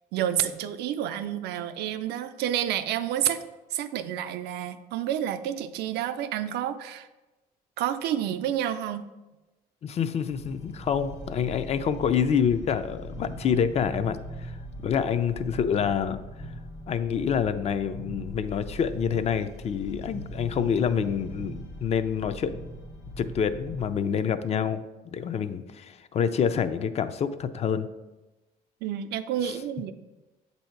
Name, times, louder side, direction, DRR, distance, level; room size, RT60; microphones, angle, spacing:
voice 1, 0.1-3.4 3.7-7.1 7.8-9.1 28.8-29.9, right 10 dB, 75° right, 11 dB, 0.4 m, -29 dB
voice 2, 9.8-14.5 14.8-16.2 16.9-22.7 23.2-27.9, left 7 dB, 40° left, 12 dB, 0.4 m, -27 dB
sound 1, 10.3-23.9, equal, 80° left, 1.3 m, -41 dB
7.8 x 2.8 x 4.4 m, 1.1 s
cardioid pair, 110°, 17 cm